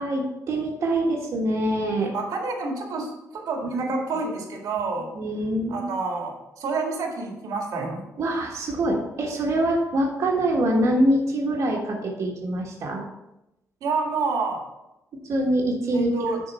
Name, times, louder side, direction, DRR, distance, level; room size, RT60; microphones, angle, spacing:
voice 1, 0.0-2.1 3.6-3.9 5.1-5.9 8.2-13.0 15.3-16.1, right 1 dB, 60° right, -2 dB, 1.4 m, -24 dB
voice 2, 2.1-5.1 5.7-8.1 13.8-14.6 15.9-16.4, right 4 dB, 90° right, 1 dB, 1.9 m, -28 dB
10.0 x 4.4 x 4.3 m, 0.91 s
wide cardioid pair, 155°, 6 cm